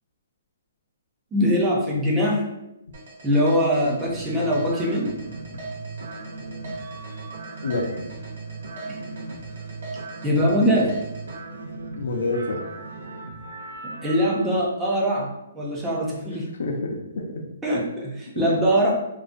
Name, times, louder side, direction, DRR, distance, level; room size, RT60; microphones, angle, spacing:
voice 1, 1.3-2.4 3.2-5.1 8.9-9.0 10.2-11.0 13.8-16.5 17.6-18.9, equal, 10° right, -4 dB, 0.4 m, -22 dB
sound 1, 2.9-11.4, right 3 dB, 55° right, 1.0 m, -39 dB
sound 2, 4.1-14.6, right 3 dB, 80° right, 0.4 m, -38 dB
voice 2, 11.9-12.7 16.6-17.4 18.3-18.5, left 2 dB, 80° left, 3 dB, 0.4 m, -27 dB
2.5 x 2.1 x 2.4 m, 0.89 s
hypercardioid pair, 175°, 0 cm